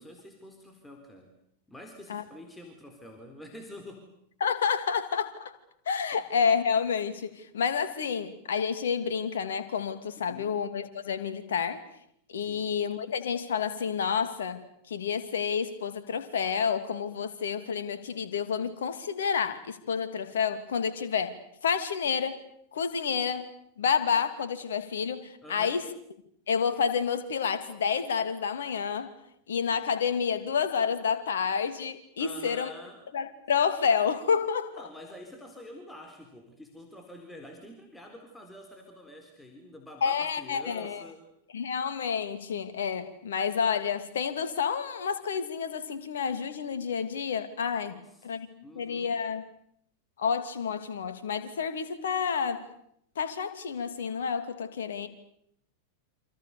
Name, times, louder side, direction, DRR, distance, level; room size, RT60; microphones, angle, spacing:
voice 1, 0.0-1.4 1.7-4.1 10.3-10.6 12.4-12.7 25.4-25.8 32.2-33.0 34.7-41.2 47.8-48.3 48.6-49.2, left 1 dB, 5° left, 4.3 m, -47 dB
voice 2, 4.4-5.5 5.9-11.8 12.3-22.4 22.7-23.5 23.8-25.9 26.5-29.1 29.5-32.7 33.1-34.8 40.0-41.0 41.5-48.5 48.7-49.5 50.2-52.7 53.2-55.1, left 6 dB, 65° left, 2.8 m, -29 dB
28.5 x 27.0 x 7.0 m
figure-of-eight pair, 90°, 0 cm